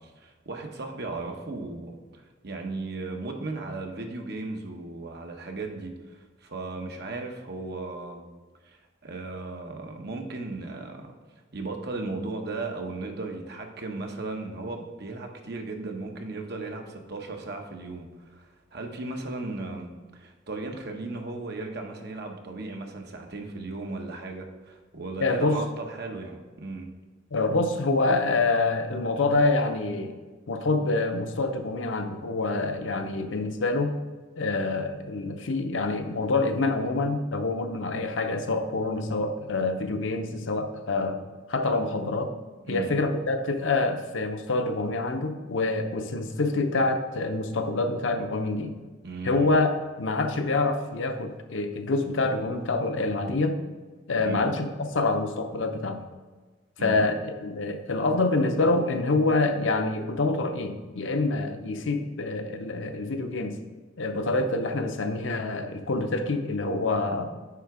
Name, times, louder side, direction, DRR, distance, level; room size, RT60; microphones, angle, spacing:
voice 1, 0.0-8.2 8.6-11.2 11.5-26.9 42.6-42.9 49.0-49.5 54.3-54.5 56.8-57.0, right 3 dB, 60° right, 3 dB, 1.0 m, -36 dB
voice 2, 25.2-25.6 27.3-30.1 30.5-34.0 34.4-41.2 41.5-42.3 42.7-48.8 49.2-49.7 50.0-53.6 54.1-56.0 56.8-63.6 64.0-67.3, left 3 dB, 80° left, 6 dB, 0.7 m, -26 dB
9.6 x 3.5 x 4.8 m, 1.3 s
head